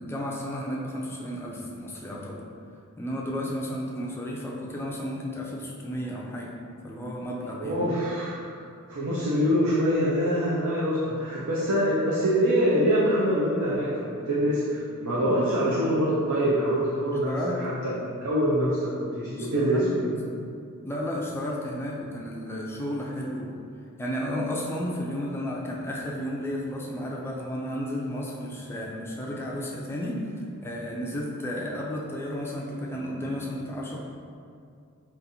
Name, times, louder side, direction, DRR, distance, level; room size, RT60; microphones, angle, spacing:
voice 1, 0.0-2.4 3.0-6.5 6.8-7.9 15.3-15.5 17.3-17.6 19.3-20.0 20.8-23.6 24.0-34.0, equal, 10° left, -2 dB, 0.3 m, -33 dB
voice 2, 7.6-8.6 8.9-17.3 17.6-18.0 18.2-20.1, equal, 90° right, -7 dB, 0.6 m, -25 dB
4.0 x 2.5 x 2.7 m, 2.3 s
head